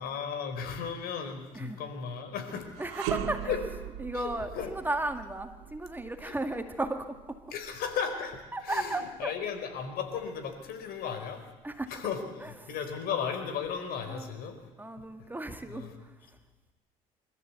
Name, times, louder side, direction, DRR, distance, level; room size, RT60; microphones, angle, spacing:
voice 1, 0.0-2.7 3.5-3.6 4.1-4.7 6.2-6.3 7.5-11.4 11.9-14.6 15.7-15.9, left 7 dB, 65° left, 7 dB, 4.3 m, -35 dB
sound 1, 2.7-12.0 12.4-12.6 13.5-14.3, right 10 dB, 85° right, 1.8 m, -41 dB
voice 2, 2.8-3.6 4.0-7.2 8.5-9.3 11.6-11.9 12.4-12.7 14.1-14.3 14.8-16.2, right 2 dB, 10° right, 7 dB, 2.0 m, -35 dB
25.5 x 14.0 x 8.3 m, 1.2 s
supercardioid pair, 85°, 16 cm